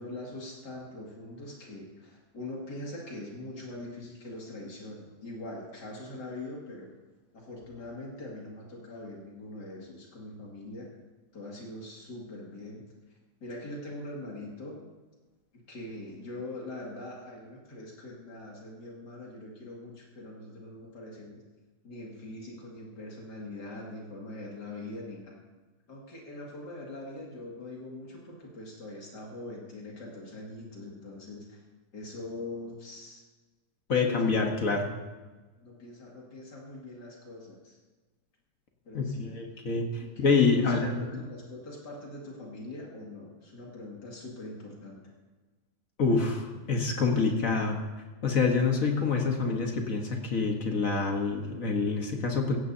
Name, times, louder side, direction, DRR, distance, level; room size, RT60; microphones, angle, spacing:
voice 1, 0.0-6.9 7.3-10.9 11.3-12.8 13.4-14.8 15.5-21.4 21.8-25.4 25.9-31.6 31.9-33.2 34.0-34.6 35.6-37.8 38.8-39.4 40.0-45.1, left 2 dB, 90° left, -3 dB, 2.9 m, -42 dB
voice 2, 33.9-34.9 38.9-41.0 46.0-47.8 48.2-52.6, left 4 dB, 55° left, 2 dB, 1.7 m, -26 dB
16.0 x 16.0 x 2.8 m, 1.3 s
omnidirectional pair, 1.7 m